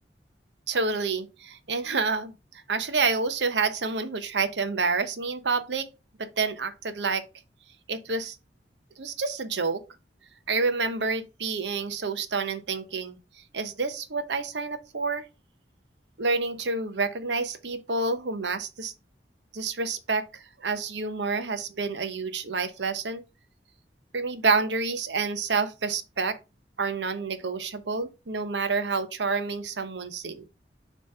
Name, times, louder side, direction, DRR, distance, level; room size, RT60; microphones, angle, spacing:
voice 1, 0.7-2.3 2.7-5.9 6.2-7.2 7.9-8.4 9.0-9.8 10.5-13.2 13.5-15.3 16.2-18.9 19.5-23.2 24.1-26.4 26.8-30.5, right 4 dB, 75° right, 0.9 m, -28 dB
6.8 x 3.2 x 5.4 m
head